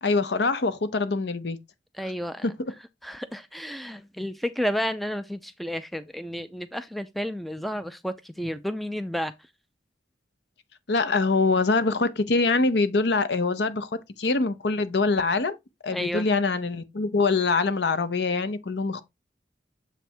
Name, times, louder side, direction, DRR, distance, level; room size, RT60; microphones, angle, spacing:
voice 1, 0.0-1.6 2.4-2.5 10.9-13.9 14.2-15.6 15.8-19.0, left 3 dB, 65° left, 0.7 m, -24 dB
voice 2, 2.0-2.5 3.0-9.3 15.9-16.3, equal, ahead, 0.3 m, -31 dB
7.3 x 3.4 x 4.3 m
head